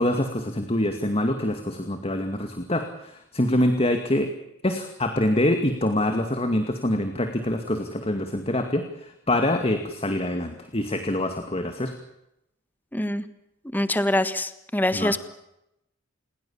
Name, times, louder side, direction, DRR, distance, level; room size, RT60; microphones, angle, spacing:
voice 1, 0.0-4.3 4.6-11.9 14.9-15.1, left 1 dB, 30° left, 6 dB, 2.2 m, -25 dB
voice 2, 12.9-13.2 13.7-15.2, left 1 dB, 10° left, 11 dB, 1.5 m, -24 dB
28.5 x 21.5 x 7.3 m, 0.84 s
head